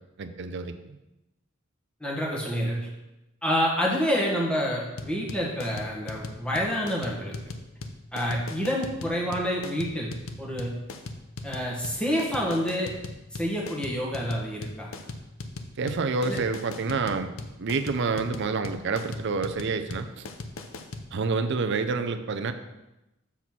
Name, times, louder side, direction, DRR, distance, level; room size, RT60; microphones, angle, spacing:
voice 1, 0.2-1.0 15.8-17.3 17.6-20.3 21.1-22.5, right 4 dB, 60° right, 8 dB, 0.6 m, -28 dB
voice 2, 2.0-2.9 3.4-7.3 8.1-10.8 11.4-12.9 13.3-14.9 16.3-16.4, equal, 5° left, -3 dB, 1.5 m, -28 dB
sound 1, 5.0-21.1, left 2 dB, 85° left, 0.7 m, -38 dB
7.1 x 4.2 x 6.0 m, 0.96 s
head